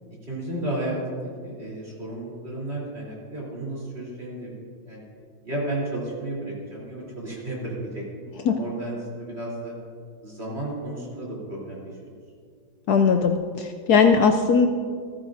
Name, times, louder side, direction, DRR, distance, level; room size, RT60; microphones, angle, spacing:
voice 1, 0.3-5.0 5.4-9.7 10.2-12.1, right 1 dB, 30° right, -5 dB, 3.7 m, -33 dB
voice 2, 12.9-14.7, left 5 dB, 70° left, 6 dB, 0.9 m, -19 dB
14.5 x 14.5 x 2.6 m, 2.1 s
omnidirectional pair, 2.1 m